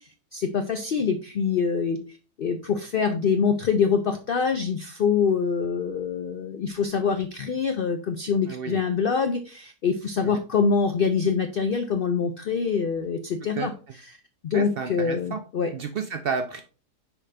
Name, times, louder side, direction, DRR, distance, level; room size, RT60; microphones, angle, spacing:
voice 1, 0.3-2.0 2.4-13.7 14.4-15.7, left 6 dB, 80° left, 7 dB, 0.4 m, -25 dB
voice 2, 8.5-8.8 10.2-10.4 13.6-13.7 14.5-15.4 15.7-16.6, right 6 dB, 80° right, 7 dB, 0.5 m, -31 dB
6.2 x 5.0 x 3.3 m, 0.37 s
omnidirectional pair, 1.7 m